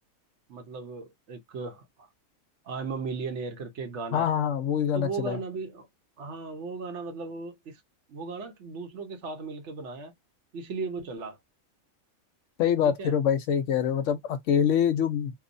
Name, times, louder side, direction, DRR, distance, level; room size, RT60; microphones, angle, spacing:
voice 1, 0.5-2.1 2.6-4.3 4.9-5.9 6.2-7.8 8.1-10.1 10.5-11.4 12.8-13.1, right 4 dB, 65° right, 0.9 m, -36 dB
voice 2, 4.1-5.4 12.6-15.3, left 8 dB, 70° left, 0.9 m, -25 dB
2.8 x 2.1 x 2.5 m
omnidirectional pair, 1.4 m